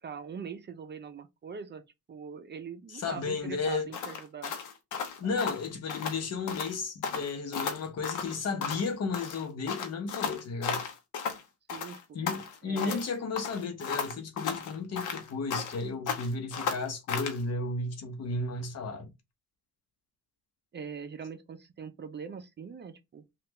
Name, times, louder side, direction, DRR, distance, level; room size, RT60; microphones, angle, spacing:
voice 1, 0.0-1.8 2.1-4.5 5.2-5.5 11.7-12.2 12.6-13.0 20.7-23.2, right 6 dB, 35° right, 0.5 m, -42 dB
voice 2, 2.9-3.9 5.2-10.8 12.1-19.1, left 4 dB, 55° left, 0.9 m, -33 dB
sound 1, 3.9-6.2 6.5-6.7 7.0-8.9 9.1-11.4 11.7-13.1 13.4-17.4, left 6 dB, 80° left, 0.8 m, -35 dB
3.2 x 2.4 x 3.0 m
cardioid pair, 90°, 30 cm